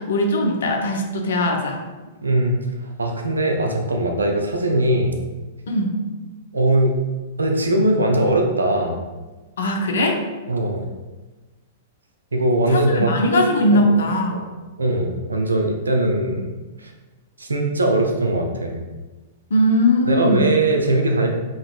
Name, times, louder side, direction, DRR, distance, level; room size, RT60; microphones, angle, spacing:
voice 1, 0.0-1.8 5.7-6.0 9.6-10.2 12.7-14.5 19.5-20.5, left 1 dB, 70° left, 3 dB, 0.7 m, -20 dB
voice 2, 2.2-5.2 6.5-7.0 7.4-9.0 10.5-10.9 12.3-13.4 13.7-13.9 14.3-14.5 14.8-16.5 16.8-16.9 17.4-18.8 20.1-21.3, right 1 dB, 85° right, 2 dB, 0.6 m, -20 dB
5.4 x 2.9 x 2.5 m, 1.2 s
hypercardioid pair, 110°, 0 cm